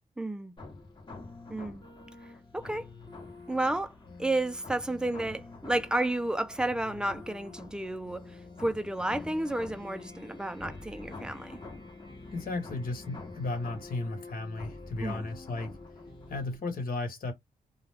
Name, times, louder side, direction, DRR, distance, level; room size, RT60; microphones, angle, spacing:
voice 1, 0.2-0.5 1.5-1.8 2.5-2.9 3.5-11.6 15.0-15.2, right 1 dB, 5° right, 0.4 m, -32 dB
sound 1, 0.6-16.6, left 3 dB, 30° left, 1.0 m, -46 dB
voice 2, 12.3-15.8 16.3-17.3, left 3 dB, 75° left, 1.3 m, -34 dB
2.3 x 2.2 x 3.4 m
wide cardioid pair, 115°, 15 cm